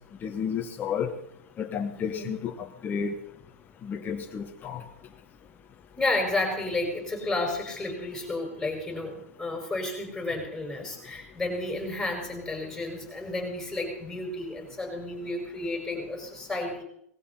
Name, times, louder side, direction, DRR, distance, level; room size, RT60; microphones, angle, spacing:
voice 1, 0.2-1.1 1.6-3.1 3.8-4.8, left 7 dB, 20° left, 1.4 m, -32 dB
voice 2, 1.9-2.3 6.0-16.8, left 2 dB, 5° left, 6.4 m, -32 dB
19.5 x 15.5 x 4.4 m
hypercardioid pair, 125°, 8 cm